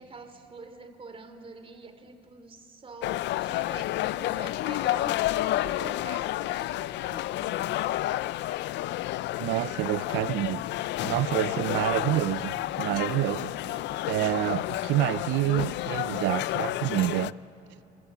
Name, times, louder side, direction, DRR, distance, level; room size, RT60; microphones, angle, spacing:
voice 1, 0.0-7.7 13.6-14.6 15.2-15.4, right 3 dB, 30° right, 2.9 m, -46 dB
sound 1, 3.0-17.3, left 15 dB, 70° left, 0.5 m, -30 dB
voice 2, 9.4-10.6 11.0-13.5 14.1-17.3, right 16 dB, 75° right, 0.5 m, -28 dB
27.5 x 22.0 x 8.4 m
cardioid pair, 95°, 19 cm